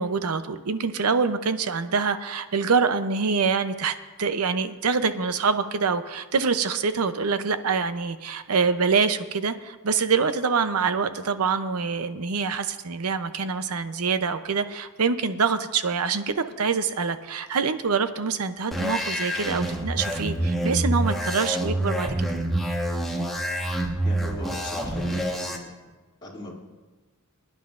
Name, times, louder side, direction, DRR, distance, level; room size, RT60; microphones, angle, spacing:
voice 1, 0.0-22.3, right 5 dB, 80° right, 11 dB, 0.7 m, -25 dB
sound 1, 18.7-25.6, right 1 dB, ahead, 1.4 m, -27 dB
voice 2, 24.0-25.9 26.2-26.5, left 1 dB, 20° left, -5 dB, 2.4 m, -38 dB
24.5 x 10.0 x 2.5 m, 1.3 s
head